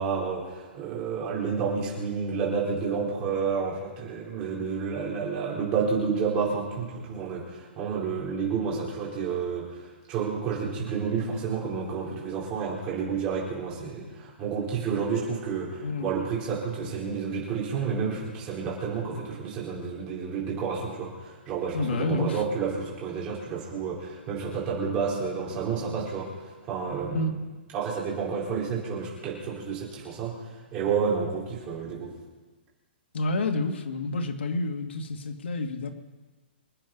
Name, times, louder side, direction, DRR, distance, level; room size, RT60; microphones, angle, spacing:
voice 1, 0.0-9.8 10.1-27.3 27.7-30.3 30.7-32.1, right 5 dB, 15° right, -5 dB, 4.4 m, -30 dB
voice 2, 15.8-16.1 21.7-22.4 27.1-27.3 33.1-35.9, left 2 dB, 80° left, 4 dB, 2.2 m, -29 dB
26.0 x 10.0 x 5.5 m, 1.3 s
hypercardioid pair, 180°, 6 cm